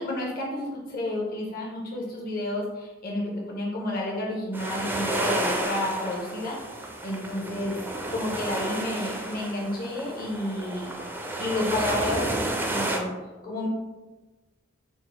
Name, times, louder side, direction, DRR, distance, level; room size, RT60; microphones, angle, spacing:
voice 1, 0.0-6.6 7.0-7.8 8.1-10.9 11.4-13.1 13.4-13.7, left 1 dB, 45° left, -3 dB, 0.6 m, -30 dB
sound 1, 4.5-13.0, right 1 dB, 10° right, 0.4 m, -31 dB
4.4 x 2.0 x 4.3 m, 1.2 s
head